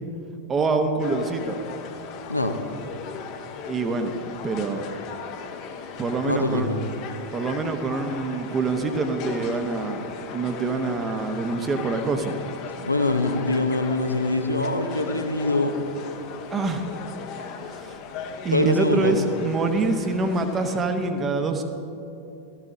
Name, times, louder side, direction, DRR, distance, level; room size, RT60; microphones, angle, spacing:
voice 1, 0.5-1.6 3.7-4.1 4.4-4.9 6.0-6.7 7.3-12.4 16.5-16.8 18.4-21.6, right 3 dB, 20° right, 7 dB, 1.0 m, -25 dB
sound 1, 1.0-20.8, left 6 dB, 40° left, 1.0 m, -37 dB
voice 2, 6.2-6.8 12.9-15.8 18.5-19.2, left 2 dB, 85° left, 6 dB, 0.8 m, -23 dB
16.5 x 13.5 x 2.7 m, 2.8 s
figure-of-eight pair, 90°, 0 cm